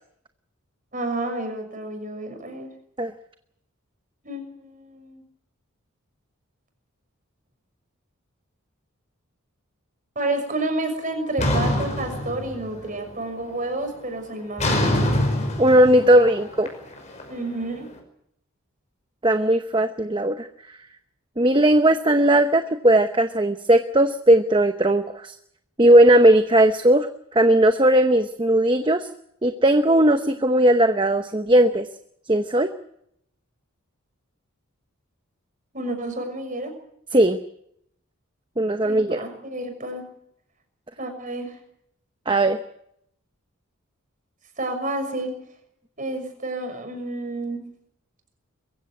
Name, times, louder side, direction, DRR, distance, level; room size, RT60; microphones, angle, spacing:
voice 1, 0.9-2.7 4.2-5.2 10.1-15.1 17.3-17.9 35.7-36.7 38.8-40.0 41.0-41.5 44.6-45.3 46.0-47.6, right 2 dB, 35° right, 5 dB, 6.2 m, -30 dB
sound 1, 11.4-12.9 13.3-13.7 14.6-17.7, left 1 dB, 35° left, 5.5 m, -25 dB
voice 2, 15.6-16.7 19.2-20.5 21.4-25.3 25.8-27.1 27.3-29.1 29.4-31.9 32.3-32.7 37.1-37.4 38.6-39.2 42.3-42.6, right 1 dB, 20° right, 8 dB, 0.9 m, -17 dB
23.0 x 15.5 x 9.6 m, 0.74 s
head